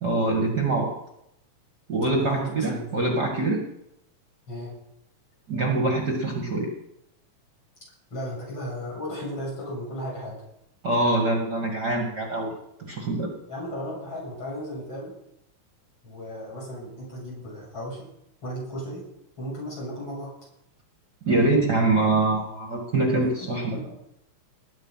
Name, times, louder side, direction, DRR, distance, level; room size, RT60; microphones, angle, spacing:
voice 1, 0.0-0.9 1.9-3.6 5.5-6.7 10.8-12.5 12.9-13.3 21.3-23.8, right 2 dB, 35° right, 0 dB, 2.5 m, -24 dB
voice 2, 2.2-3.2 4.5-4.8 8.1-10.4 13.5-15.1 16.0-18.1 18.4-19.0 19.4-20.3 23.2-23.5 23.7-23.8, equal, 40° left, -4 dB, 8.3 m, -35 dB
19.5 x 9.8 x 5.8 m, 0.81 s
omnidirectional pair, 3.4 m